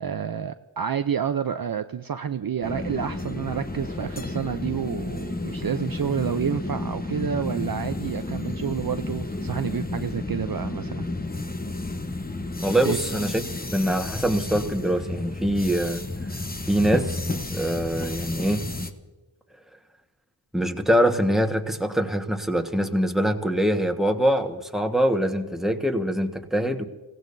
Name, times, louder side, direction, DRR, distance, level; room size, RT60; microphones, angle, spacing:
voice 1, 0.0-11.0 12.8-13.0, right 8 dB, 50° right, 9 dB, 0.6 m, -29 dB
sound 1, 2.6-18.9, left 2 dB, 20° left, 1.0 m, -32 dB
voice 2, 12.6-13.4 13.7-16.0 16.7-18.7 20.5-26.9, equal, ahead, 4 dB, 1.4 m, -24 dB
28.5 x 16.5 x 2.7 m, 1.3 s
cardioid pair, 50°, 48 cm